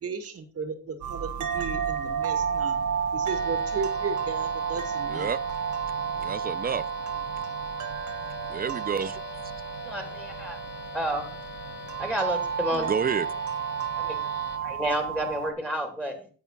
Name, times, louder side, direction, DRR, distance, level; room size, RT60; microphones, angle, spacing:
voice 1, 0.0-2.8 3.1-5.3, right 5 dB, 50° right, 6 dB, 2.1 m, -35 dB
sound 1, 1.0-15.5, right 7 dB, 75° right, 1.3 m, -31 dB
sound 2, 3.2-14.6, left 4 dB, 35° left, 2.3 m, -42 dB
voice 2, 5.1-5.4 6.2-6.8 8.5-9.2 12.7-13.3, right 6 dB, 30° right, 15 dB, 0.7 m, -29 dB
voice 3, 9.8-10.6 10.9-11.3 12.0-12.9 13.9-14.2 14.6-16.3, right 1 dB, 5° left, 4 dB, 2.7 m, -30 dB
10.0 x 7.9 x 4.2 m, 0.40 s
cardioid pair, 90°, 30 cm